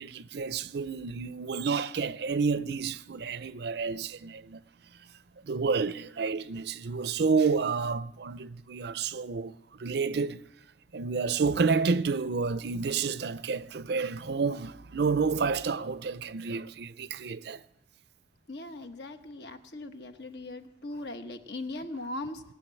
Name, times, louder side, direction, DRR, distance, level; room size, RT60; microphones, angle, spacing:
voice 1, 0.0-4.6 5.4-10.4 10.9-17.6, right 4 dB, 60° right, 0.5 m, -30 dB
voice 2, 18.5-22.4, left 2 dB, 60° left, 1.2 m, -39 dB
19.0 x 7.4 x 9.6 m
head